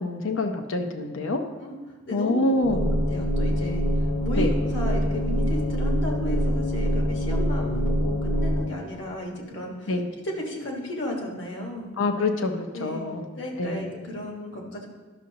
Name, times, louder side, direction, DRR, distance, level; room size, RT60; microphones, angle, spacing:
voice 1, 0.0-1.4 2.1-2.9 4.4-4.5 9.9-10.1 12.0-13.2 13.6-13.8, left 2 dB, 80° left, 6 dB, 0.7 m, -26 dB
voice 2, 2.0-2.8 3.1-3.8 4.2-10.0 10.2-11.9 12.7-13.0 13.4-14.9, left 1 dB, 60° left, -1 dB, 1.5 m, -34 dB
sound 1, 2.6-8.6, equal, 45° left, 1.2 m, -25 dB
12.0 x 6.3 x 2.9 m, 1.3 s
head